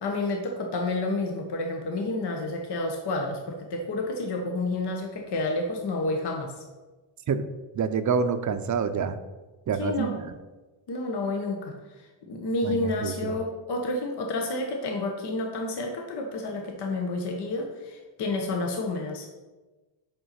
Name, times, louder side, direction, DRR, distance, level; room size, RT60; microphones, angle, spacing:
voice 1, 0.0-6.6 9.7-10.1 10.9-19.3, left 2 dB, 55° left, 2 dB, 1.1 m, -30 dB
voice 2, 7.7-9.2 9.7-10.2 12.6-13.4, right 6 dB, 40° right, 11 dB, 0.5 m, -27 dB
5.5 x 5.3 x 5.7 m, 1.2 s
cardioid pair, 110°, 47 cm